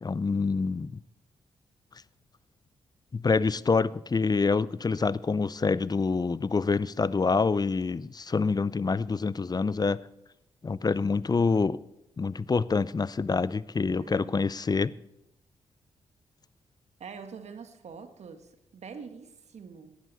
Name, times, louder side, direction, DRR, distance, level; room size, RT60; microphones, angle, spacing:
voice 1, 0.0-1.0 3.1-10.0 10.6-11.8 12.2-14.9, left 4 dB, 35° left, 19 dB, 0.6 m, -26 dB
voice 2, 14.0-14.5 17.0-20.0, right 6 dB, 65° right, 8 dB, 1.5 m, -45 dB
18.0 x 13.0 x 4.1 m, 0.86 s
supercardioid pair, 45°, 12 cm